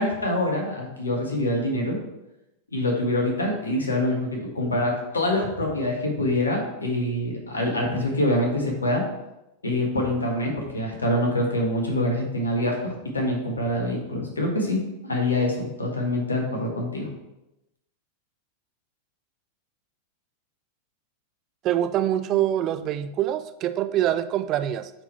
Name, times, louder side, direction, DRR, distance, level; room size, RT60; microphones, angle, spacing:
voice 1, 0.0-2.0 2.7-9.0 9.6-14.8 15.0-17.1, left 1 dB, 75° left, 1 dB, 1.7 m, -25 dB
voice 2, 21.6-24.9, right 11 dB, 35° right, 12 dB, 0.4 m, -25 dB
8.8 x 4.7 x 3.3 m, 0.90 s
figure-of-eight pair, 90°, 0 cm